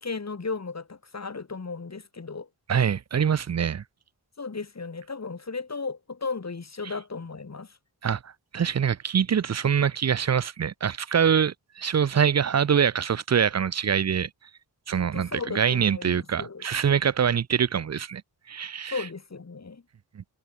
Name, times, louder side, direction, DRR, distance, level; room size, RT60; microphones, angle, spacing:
voice 1, 0.0-2.5 4.4-7.8 14.9-16.7 18.9-19.8, left 4 dB, 35° left, 1.5 m, -35 dB
voice 2, 2.7-3.8 8.0-8.2 8.5-14.3 14.9-18.2 18.5-19.0 20.2-20.3, right 7 dB, 40° right, 0.5 m, -24 dB
cardioid pair, 50°, 44 cm